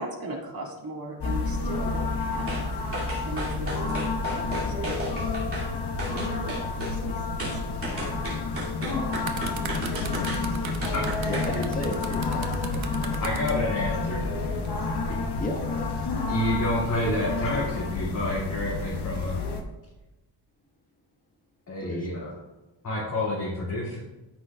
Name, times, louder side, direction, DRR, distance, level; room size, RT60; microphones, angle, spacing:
voice 1, 0.0-2.8 3.2-5.0 6.0-7.6, right 2 dB, 50° right, -1 dB, 2.1 m, -38 dB
sound 1, 1.2-19.6, left 3 dB, 55° left, 1.1 m, -30 dB
sound 2, 2.5-2.7 2.9-5.7 6.0-7.0 7.4-11.5 11.9-12.0, right 1 dB, 30° right, 2.8 m, -34 dB
voice 2, 7.9-8.4 11.3-13.3 15.3-15.6 21.8-22.1, left 1 dB, 15° left, 0 dB, 1.5 m, -36 dB
sound 3, 9.1-13.6 14.4-14.7, right 6 dB, 75° right, 1.1 m, -38 dB
voice 3, 10.9-11.3 13.2-14.2 16.3-19.4 21.7-22.3 22.8-24.0, left 1 dB, 40° left, -7 dB, 2.4 m, -29 dB
14.0 x 6.0 x 2.4 m, 1.1 s
wide cardioid pair, 150°, 46 cm